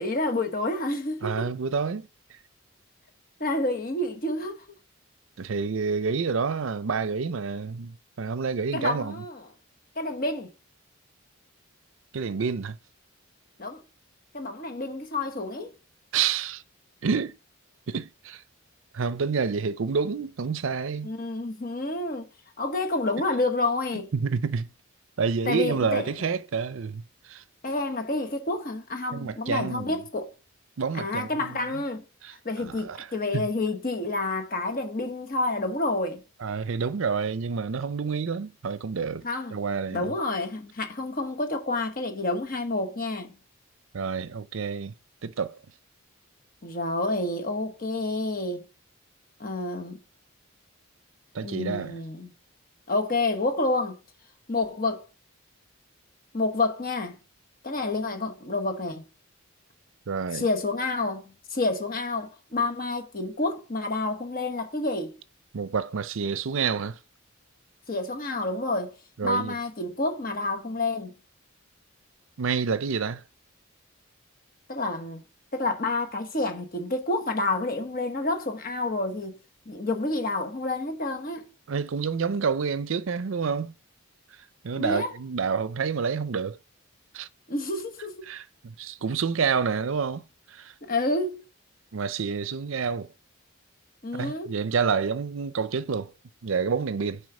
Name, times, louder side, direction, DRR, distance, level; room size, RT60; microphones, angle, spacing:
voice 1, 0.0-1.5 3.4-4.6 8.7-9.4 10.0-10.5 13.6-13.8 14.3-15.7 21.0-22.3 22.6-24.1 25.5-26.3 27.6-30.3 30.9-32.0 32.4-36.2 39.2-39.6 39.9-43.4 46.6-48.7 49.4-50.0 51.4-52.3 52.9-54.0 54.5-55.1 56.3-57.2 57.6-59.0 60.3-65.1 67.9-69.0 69.2-71.1 74.7-75.2 75.5-79.4 79.7-81.5 84.8-85.1 87.5-88.2 90.8-91.4 94.0-94.6, left 2 dB, 40° left, 1.2 m, -29 dB
voice 2, 1.2-2.4 5.4-9.2 12.1-12.8 16.1-16.6 17.0-17.4 17.9-18.4 18.9-21.1 24.1-24.7 25.2-27.4 29.1-30.0 30.8-31.8 32.2-33.1 33.3-33.4 36.4-39.2 39.5-40.1 43.9-44.9 45.2-45.6 51.3-52.0 60.1-60.5 65.5-67.0 69.2-69.6 72.4-73.2 81.7-83.7 84.6-86.6 87.1-87.3 88.2-90.7 91.9-93.1 94.1-96.1 96.4-97.2, right 5 dB, 65° right, 0.5 m, -28 dB
6.4 x 4.7 x 4.8 m
head